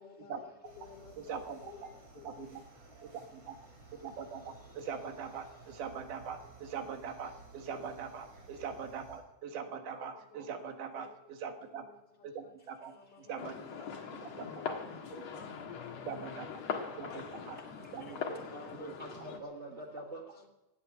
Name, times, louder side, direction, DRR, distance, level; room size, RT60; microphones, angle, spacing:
voice 1, 0.0-2.5 9.6-10.6 10.9-11.2 11.5-12.5 12.8-14.0 14.3-15.3 15.7-16.6 16.9-17.7 18.5-18.6 19.3-19.4 19.7-20.5, left 6 dB, 80° left, -3 dB, 4.8 m, -56 dB
sound 1, 0.6-9.2, right 3 dB, 50° right, 5.6 m, -56 dB
voice 2, 1.2-1.6 2.2-2.5 3.0-3.6 4.0-11.8 12.2-12.9 13.3-13.6 14.2-14.8 16.1-16.5 17.0-17.6 17.9-18.2, right 6 dB, 80° right, 6 dB, 3.1 m, -42 dB
sound 2, 13.4-19.4, left 6 dB, 60° left, 2.7 m, -41 dB
voice 3, 18.0-20.2, right 1 dB, 30° right, 0 dB, 1.3 m, -45 dB
17.5 x 8.5 x 9.4 m, 0.99 s
omnidirectional pair, 3.6 m